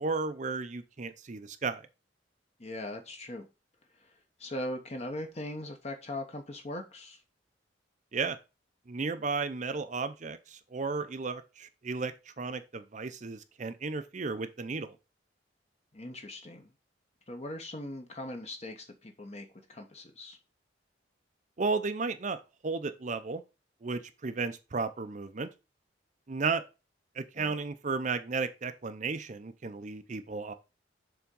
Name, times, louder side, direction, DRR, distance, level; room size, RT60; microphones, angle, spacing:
voice 1, 0.0-1.8 8.1-8.4 8.9-15.0 21.6-23.4 23.8-25.5 26.3-26.6 27.1-30.5, right 4 dB, 40° right, 0.6 m, -34 dB
voice 2, 2.6-3.5 4.4-7.2 15.9-16.7 17.3-20.4 27.4-27.5, left 1 dB, 35° left, 1.0 m, -40 dB
7.0 x 3.6 x 5.3 m
head